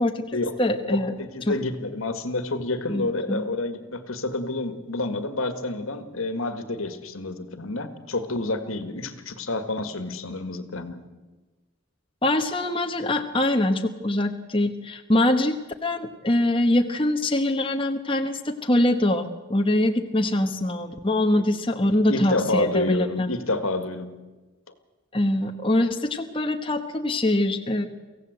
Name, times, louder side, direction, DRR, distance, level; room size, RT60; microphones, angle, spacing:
voice 1, 0.0-1.1 1.4-1.5 2.9-3.4 12.2-23.3 25.1-27.9, left 1 dB, 25° left, 5 dB, 1.2 m, -23 dB
voice 2, 0.9-11.0 22.1-24.1, left 2 dB, 75° left, 10 dB, 1.9 m, -29 dB
24.5 x 16.5 x 8.0 m, 1.2 s
head